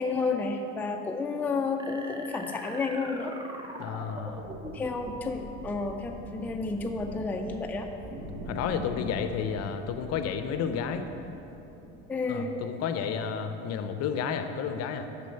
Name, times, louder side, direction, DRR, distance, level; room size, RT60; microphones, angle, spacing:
voice 1, 0.0-3.3 4.7-7.9 12.1-12.5, left 4 dB, 5° left, 3 dB, 0.4 m, -31 dB
sound 1, 1.8-5.3, right 1 dB, 15° right, 0.8 m, -41 dB
voice 2, 3.8-4.4 8.5-11.1 12.3-15.1, left 7 dB, 50° left, 8 dB, 0.6 m, -31 dB
sound 2, 4.1-12.3, equal, 80° right, 1.5 m, -43 dB
6.1 x 6.0 x 5.7 m, 2.9 s
supercardioid pair, 100°, 32 cm